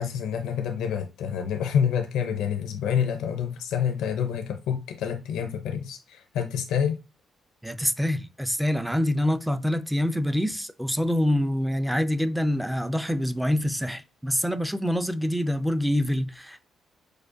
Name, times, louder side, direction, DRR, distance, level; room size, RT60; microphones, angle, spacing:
voice 1, 0.0-7.0, left 8 dB, 85° left, 0.5 m, -27 dB
voice 2, 7.6-16.7, equal, ahead, 0.4 m, -26 dB
4.7 x 2.2 x 2.5 m
cardioid pair, 90°, 0 cm